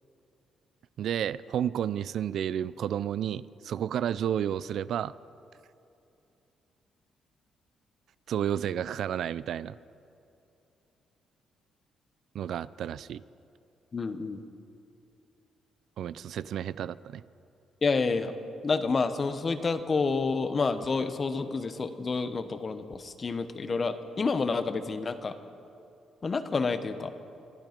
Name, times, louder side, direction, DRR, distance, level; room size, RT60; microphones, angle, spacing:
voice 1, 1.0-5.1 8.3-9.8 12.3-13.2 16.0-17.2, right 9 dB, 70° right, 18 dB, 0.3 m, -31 dB
voice 2, 13.9-14.4 17.8-18.3 18.6-25.4 26.2-27.1, left 4 dB, 35° left, 10 dB, 0.9 m, -29 dB
24.5 x 9.1 x 5.2 m, 2.7 s
cardioid pair, 90°, 0 cm